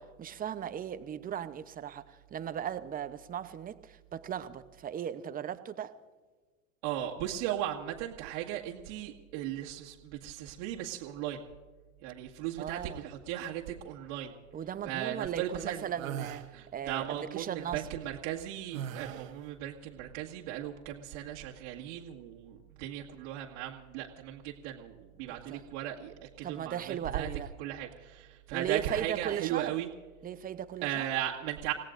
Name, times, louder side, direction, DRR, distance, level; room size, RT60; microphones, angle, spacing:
voice 1, 0.2-5.9 12.6-13.0 14.5-16.4 16.7-17.9 25.3-25.6 26.4-27.5 28.5-29.8 30.2-31.1, right 9 dB, 20° right, 12 dB, 0.8 m, -37 dB
voice 2, 6.8-11.4 12.0-14.3 14.9-15.8 16.5-26.8 27.1-27.3 27.6-29.9 30.8-31.7, right 12 dB, 55° right, -3 dB, 2.0 m, -37 dB
sound 1, 15.9-16.5 18.7-19.4, right 9 dB, 70° right, 1.6 m, -39 dB
29.5 x 17.0 x 2.6 m, 1.3 s
hypercardioid pair, 110°, 42 cm